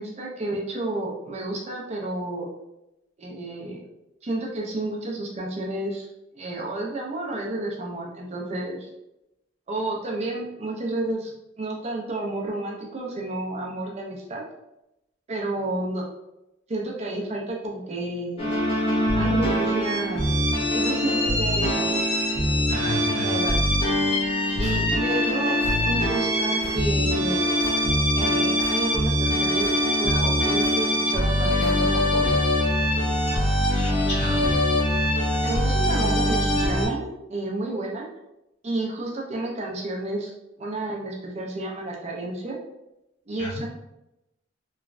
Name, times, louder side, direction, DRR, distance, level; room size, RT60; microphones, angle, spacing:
voice 1, 0.0-2.5 3.2-3.8 4.2-6.1 6.3-8.9 9.7-14.4 15.3-16.1 16.7-18.5 19.1-20.3 20.7-22.0 23.2-23.6 24.6-25.6 25.8-27.4 28.1-32.2 35.3-38.1 38.6-40.3 40.6-42.6 43.3-43.6, right 2 dB, 35° right, -1 dB, 0.5 m, -31 dB
sound 1, 18.4-36.9, equal, 30° left, 0.5 m, -23 dB
voice 2, 22.7-23.4 33.4-34.5 43.4-43.6, left 1 dB, 65° left, -7 dB, 1.3 m, -32 dB
sound 2, 24.6-24.8 25.6-25.8 26.6-26.8 27.6-27.8 28.6-28.8 29.6-29.8 30.6-30.8 31.6-31.8, equal, 15° right, 0.9 m, -39 dB
3.0 x 2.2 x 2.4 m, 0.89 s
head